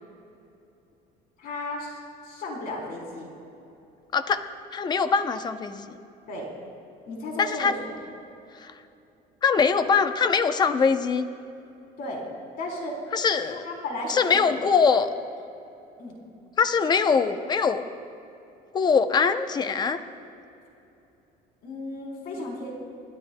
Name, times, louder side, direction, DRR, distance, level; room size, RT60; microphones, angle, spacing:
voice 1, 1.4-3.3 6.3-6.5 7.1-7.8 12.0-12.2 12.6-13.0 13.5-14.6 16.0-16.2 21.6-22.7, left 2 dB, 60° left, -1 dB, 3.5 m, -34 dB
voice 2, 4.7-6.0 7.4-7.7 8.5-8.7 9.4-11.3 13.1-13.6 14.1-15.1 16.6-17.8 18.7-20.0, left 5 dB, 25° left, 10 dB, 0.6 m, -22 dB
30.0 x 12.5 x 2.2 m, 2.8 s
cardioid pair, 150°, 18 cm